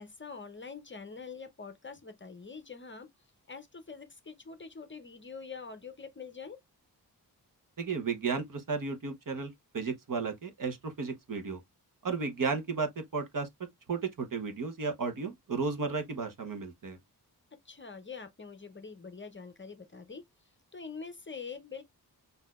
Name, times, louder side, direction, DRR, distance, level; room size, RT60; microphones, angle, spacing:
voice 1, 0.0-3.1 3.5-6.6 17.6-20.2 20.7-21.8, left 5 dB, 30° left, 0.7 m, -45 dB
voice 2, 7.8-11.6 12.0-13.5 13.9-17.0, right 4 dB, 55° right, 1.0 m, -34 dB
6.4 x 2.7 x 2.3 m
wide cardioid pair, 165°, 39 cm